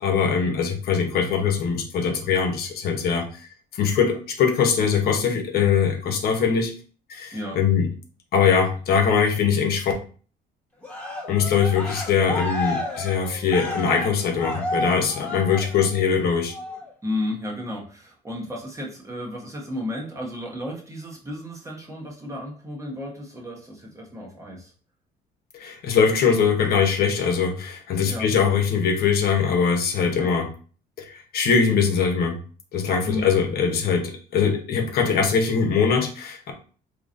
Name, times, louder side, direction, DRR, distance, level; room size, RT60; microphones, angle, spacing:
voice 1, 0.0-3.3 3.7-6.7 7.1-7.9 8.3-9.9 11.3-16.5 25.5-30.5 31.0-32.4 32.7-36.5, left 6 dB, 65° left, 3 dB, 0.9 m, -22 dB
voice 2, 7.3-7.6 17.0-24.7 28.0-28.3 30.1-30.3 33.0-33.3, left 1 dB, 20° right, -2 dB, 1.0 m, -33 dB
Cheering, 10.8-16.1 16.5-16.9, left 2 dB, 10° left, 1.3 m, -31 dB
3.8 x 2.9 x 2.6 m, 0.40 s
cardioid pair, 110°, 17 cm